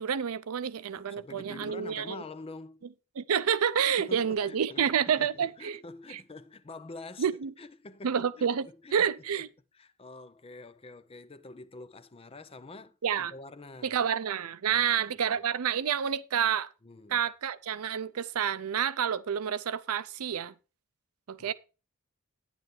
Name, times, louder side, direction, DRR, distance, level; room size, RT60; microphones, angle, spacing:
voice 1, 0.0-2.2 3.2-5.8 6.1-6.2 7.2-7.5 8.0-8.7 8.9-9.5 13.0-13.3 13.8-16.7 17.1-20.5 21.3-21.5, right 8 dB, 80° right, 0.5 m, -29 dB
voice 2, 0.9-2.8 4.0-4.9 5.2-7.3 7.6-9.4 9.8-14.0 14.7-15.4 16.8-17.2 21.4-21.5, left 3 dB, 25° left, 0.6 m, -47 dB
9.7 x 8.9 x 3.2 m
head